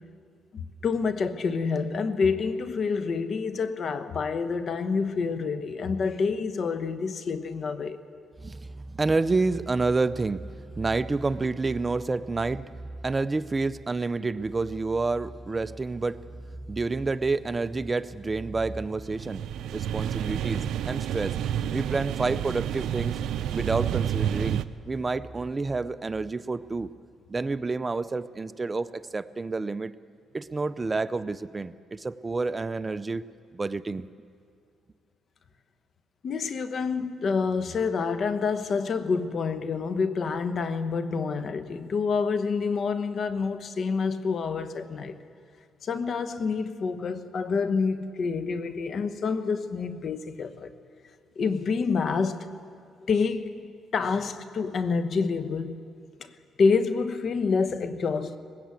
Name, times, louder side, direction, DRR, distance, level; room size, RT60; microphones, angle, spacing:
voice 1, 0.5-8.0 36.2-45.1 45.8-50.7 51.4-52.5 53.1-53.5 53.9-55.8 56.2-56.3 56.6-58.4, left 5 dB, 55° left, 1.1 m, -27 dB
voice 2, 8.4-12.7 13.0-16.2 16.7-19.4 19.7-21.4 21.7-23.2 23.5-26.9 27.3-29.9 30.3-33.2 33.5-34.1, right 3 dB, 25° right, 0.5 m, -29 dB
sound 1, 19.0-24.6, right 10 dB, 80° right, 0.5 m, -29 dB
20.0 x 16.5 x 8.4 m
cardioid pair, 90°, 0 cm